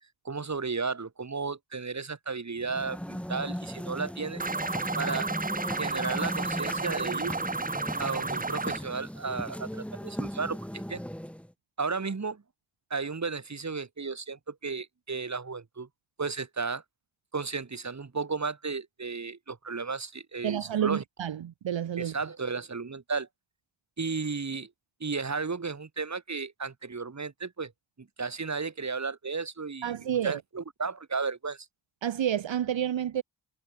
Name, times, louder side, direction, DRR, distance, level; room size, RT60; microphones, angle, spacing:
voice 1, 0.2-4.4 5.0-5.3 5.7-7.4 8.0-10.6 10.9-11.0 11.8-12.4 12.9-15.9 16.2-16.8 17.3-21.0 22.0-23.3 24.0-24.7 25.0-27.7 28.0-31.6, right 4 dB, 35° right, 3.2 m, -34 dB
sound 1, 2.6-11.5, equal, 5° left, 7.4 m, -37 dB
sound 2, 4.4-8.8, right 3 dB, 20° right, 0.9 m, -32 dB
voice 2, 20.4-22.1 29.8-30.4 32.0-33.2, right 10 dB, 70° right, 1.2 m, -29 dB
wide cardioid pair, 90°, 47 cm